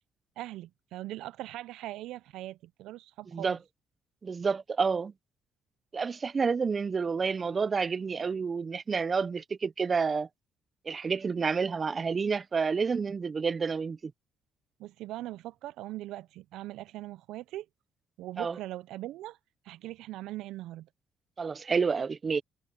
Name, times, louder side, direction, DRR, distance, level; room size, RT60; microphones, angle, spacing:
voice 1, 0.4-3.6 14.8-17.7 18.2-19.4 19.6-20.9, right 15 dB, 80° right, 0.5 m, -40 dB
voice 2, 4.2-5.1 5.9-10.3 10.9-14.1 18.4-18.6 21.4-22.4, right 5 dB, 40° right, 0.7 m, -29 dB
supercardioid pair, 70°, 0 cm